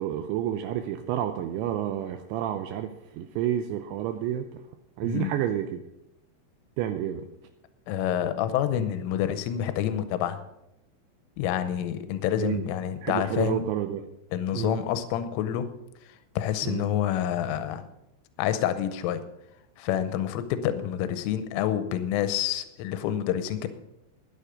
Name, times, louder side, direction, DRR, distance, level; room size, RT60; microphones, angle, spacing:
voice 1, 0.0-4.5 5.0-5.8 6.8-7.2 12.4-12.6 13.0-14.1 14.5-14.8 16.6-16.9, right 11 dB, 85° right, 7 dB, 2.6 m, -30 dB
voice 2, 5.0-5.3 7.9-10.4 11.4-13.6 14.3-15.7 16.4-17.8 18.4-19.2 19.8-23.7, left 10 dB, 85° left, 11 dB, 3.2 m, -28 dB
13.5 x 9.8 x 5.1 m, 0.85 s
omnidirectional pair, 5.8 m